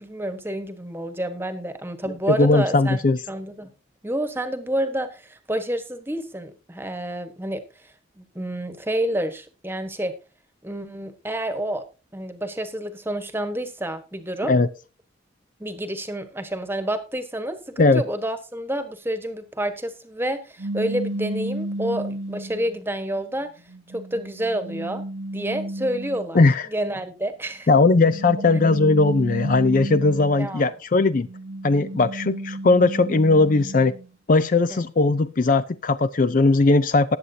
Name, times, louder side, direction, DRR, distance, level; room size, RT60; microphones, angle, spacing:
voice 1, 0.0-3.0 3.3-3.7 4.0-7.6 8.2-10.1 10.6-11.8 12.1-14.5 15.6-23.5 23.9-25.0 25.3-26.4 26.7-27.7 30.4-30.7 34.7-34.8, right 1 dB, 10° right, 9 dB, 1.3 m, -29 dB
voice 2, 2.3-3.2 14.5-14.7 17.8-18.0 26.3-26.7 27.7-31.3 31.6-33.9 34.3-37.2, left 3 dB, 45° left, 14 dB, 0.4 m, -18 dB
sound 1, 20.6-22.8 23.4-26.5 27.7-30.6 31.1-34.1, right 1 dB, 70° right, 1.0 m, -33 dB
19.5 x 7.8 x 2.7 m, 0.31 s
head